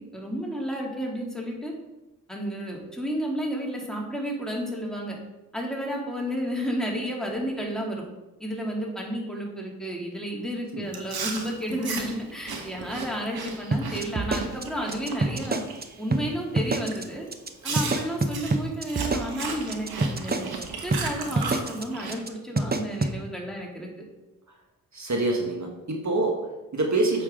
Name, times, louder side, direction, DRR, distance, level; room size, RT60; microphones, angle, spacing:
voice 1, 0.0-1.7 2.3-5.2 5.5-8.0 8.4-15.6 16.0-17.3 17.6-23.9, equal, ahead, -2 dB, 2.6 m, -32 dB
Chewing mastication, 10.9-15.8 16.1-16.4 16.9-17.0 17.6-22.1, right 4 dB, 80° right, 1.4 m, -35 dB
sound 1, 13.7-15.8 16.1-16.2 16.6-17.0 17.3-17.5 17.8-20.6 20.9-21.0 21.4-21.8 22.1-22.3 22.6-23.1, right 2 dB, 25° right, 0.8 m, -26 dB
voice 2, 24.9-27.2, right 2 dB, 50° right, 1 dB, 1.5 m, -27 dB
8.6 x 7.0 x 3.8 m, 1.1 s
cardioid pair, 55°, 37 cm